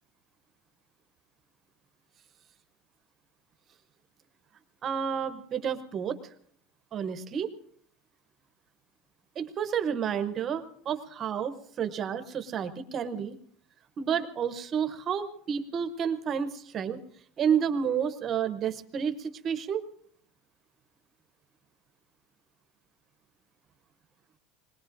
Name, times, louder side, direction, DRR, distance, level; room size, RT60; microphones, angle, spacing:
voice 1, 4.8-6.2 6.9-7.5 9.4-13.4 14.0-17.0 17.4-19.8, right 7 dB, 25° right, 10 dB, 0.7 m, -30 dB
26.0 x 21.0 x 2.5 m, 0.64 s
cardioid pair, 170°, 0 cm